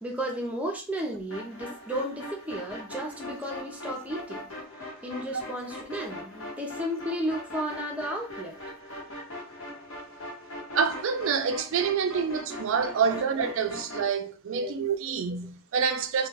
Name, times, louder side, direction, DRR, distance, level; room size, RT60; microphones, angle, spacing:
voice 1, 0.0-4.4 5.0-8.5 12.5-12.6 13.1-13.2 14.5-14.7, equal, 5° right, 0.5 m, -33 dB
sound 1, 1.3-14.1, left 1 dB, 60° left, 1.0 m, -41 dB
voice 2, 10.7-16.3, right 6 dB, 60° right, 0.4 m, -27 dB
2.3 x 2.2 x 3.3 m
head